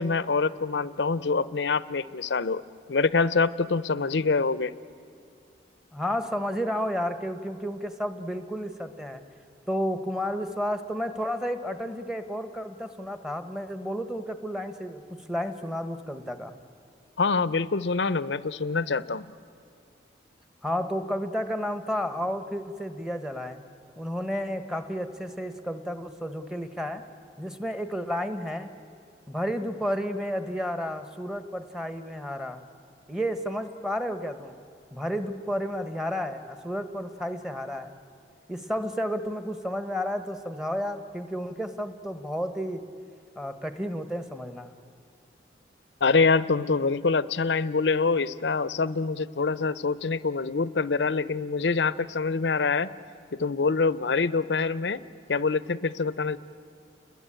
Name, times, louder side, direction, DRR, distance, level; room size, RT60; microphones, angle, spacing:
voice 1, 0.0-2.6 2.9-4.7 17.2-19.3 46.0-52.9 53.4-55.0 55.3-56.4, left 4 dB, 70° left, 16 dB, 0.7 m, -25 dB
voice 2, 5.9-9.2 9.7-16.5 20.6-23.6 24.0-27.0 27.4-28.7 29.3-32.6 33.1-34.6 34.9-37.9 38.5-42.8 43.4-44.7, equal, 5° right, 8 dB, 1.2 m, -31 dB
30.0 x 21.5 x 8.9 m, 2.4 s
head